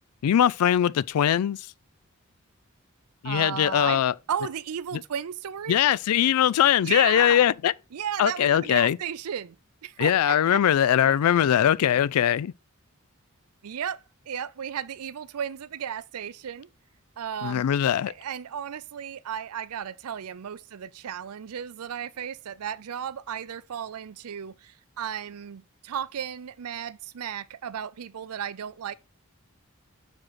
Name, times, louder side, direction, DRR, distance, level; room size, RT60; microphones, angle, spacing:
voice 1, 0.2-1.6 3.2-4.1 5.7-7.7 8.2-9.0 10.0-12.5 17.4-18.1, left 10 dB, 90° left, 0.3 m, -21 dB
voice 2, 3.2-5.8 6.8-7.5 7.9-9.6 9.8-11.2 13.6-16.7 17.2-17.6 18.0-28.9, right 8 dB, 90° right, 0.5 m, -34 dB
6.1 x 4.9 x 4.1 m
head